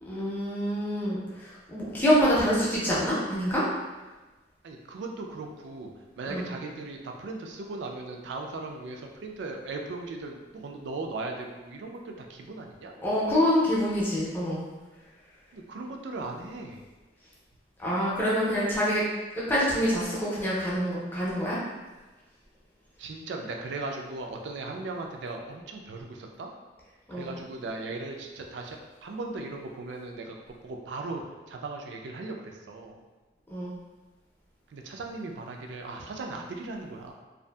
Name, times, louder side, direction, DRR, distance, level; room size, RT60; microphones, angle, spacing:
voice 1, 0.0-3.6 6.3-6.4 13.0-14.6 17.8-19.0 19.3-21.6 27.1-27.3 33.5-33.7, equal, 10° left, -7 dB, 0.5 m, -26 dB
voice 2, 4.6-12.9 15.5-16.8 23.0-26.5 27.1-30.4 30.6-33.0 34.7-37.1, right 3 dB, 70° right, 2 dB, 0.3 m, -38 dB
2.6 x 2.4 x 2.2 m, 1.2 s
head